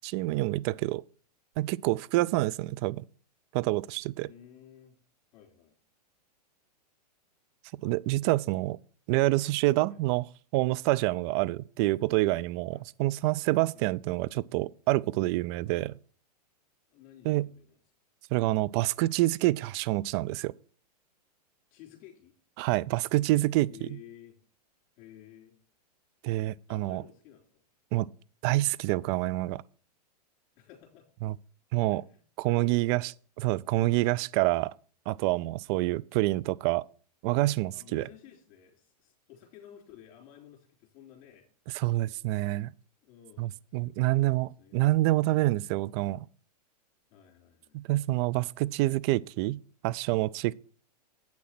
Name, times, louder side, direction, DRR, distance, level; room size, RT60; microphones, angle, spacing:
voice 1, 0.0-1.0 1.6-3.0 3.5-4.3 7.8-8.8 9.1-10.2 10.5-15.9 17.2-17.5 18.3-20.5 22.6-23.9 26.2-27.0 27.9-28.1 28.4-29.6 31.2-31.4 31.7-32.0 32.4-33.1 33.4-34.7 35.1-36.8 37.2-38.1 41.7-42.7 43.4-46.3 47.7-50.5, right 18 dB, 40° right, 0.4 m, -27 dB
voice 2, 4.2-5.0 5.3-5.8 9.9-10.0 11.3-11.5 12.7-12.8 13.7-13.9 15.7-15.8 16.9-17.8 21.7-22.3 23.7-24.4 25.0-25.6 26.7-27.6 30.6-31.1 31.7-33.1 35.7-35.9 37.7-41.5 43.0-43.5 43.8-45.0 45.6-45.9 47.1-47.9, left 10 dB, 40° left, 3.5 m, -53 dB
8.3 x 6.4 x 5.9 m
hypercardioid pair, 115°, 21 cm